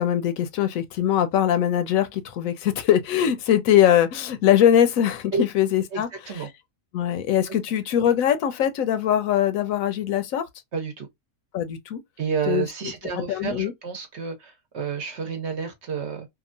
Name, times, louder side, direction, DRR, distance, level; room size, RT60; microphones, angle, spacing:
voice 1, 0.0-6.1 6.9-10.5 11.5-12.0 12.5-12.7 13.3-13.7, left 10 dB, 75° left, 1.0 m, -21 dB
voice 2, 5.9-6.5 7.5-7.6 10.7-11.1 12.2-16.3, right 6 dB, 55° right, 1.0 m, -30 dB
2.9 x 2.3 x 2.4 m
omnidirectional pair, 1.5 m